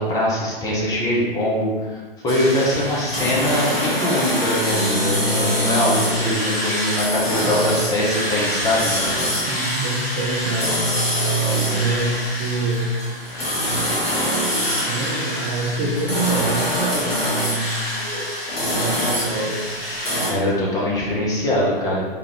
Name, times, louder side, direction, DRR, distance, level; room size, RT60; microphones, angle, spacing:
voice 1, 0.0-1.7 2.2-9.0 20.3-22.1, left 1 dB, 10° left, -5 dB, 0.7 m, -22 dB
sound 1, 2.3-20.3, equal, 80° left, 1.3 m, -24 dB
voice 2, 9.5-11.0 11.7-13.0 14.7-17.2 17.5-18.3 18.6-19.7, right 2 dB, 25° right, -5 dB, 0.4 m, -26 dB
3.4 x 3.3 x 3.0 m, 1.3 s
figure-of-eight pair, 120°, 30 cm